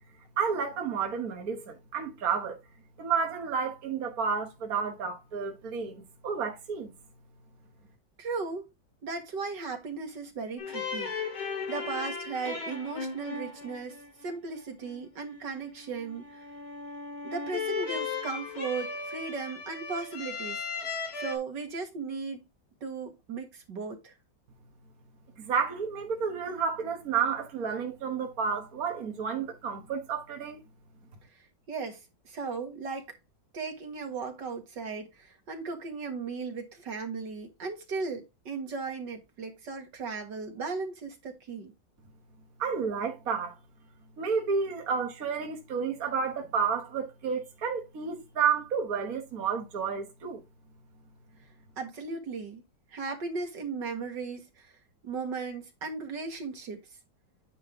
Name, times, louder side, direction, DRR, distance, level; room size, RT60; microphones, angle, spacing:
voice 1, 0.4-2.6 3.0-6.9 25.4-30.6 42.6-43.6 44.2-50.4, right 6 dB, 50° right, 1.8 m, -31 dB
voice 2, 8.2-8.6 9.0-16.4 17.2-20.6 21.1-22.5 22.8-24.1 31.7-33.2 33.5-41.7 51.8-52.6 52.9-54.7 55.0-56.8, right 4 dB, 65° right, 2.4 m, -36 dB
sound 1, 10.6-21.4, left 4 dB, 60° left, 2.6 m, -37 dB
9.4 x 3.2 x 5.3 m
omnidirectional pair, 2.1 m